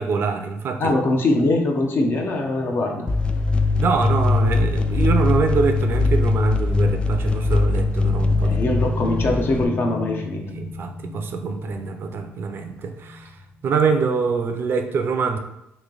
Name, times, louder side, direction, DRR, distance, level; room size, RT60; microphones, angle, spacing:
voice 1, 0.0-1.0 3.8-8.6 10.4-15.4, right 5 dB, 50° right, 6 dB, 0.5 m, -24 dB
voice 2, 0.8-3.1 8.4-10.4, left 2 dB, 50° left, 2 dB, 0.7 m, -22 dB
sound 1, 1.0-6.4 6.7-6.9 8.0-14.6, left 4 dB, 85° left, 1.5 m, -39 dB
sound 2, 3.1-9.7, left 3 dB, 20° left, 0.3 m, -21 dB
3.1 x 2.8 x 3.8 m, 0.85 s
cardioid pair, 100°, 5 cm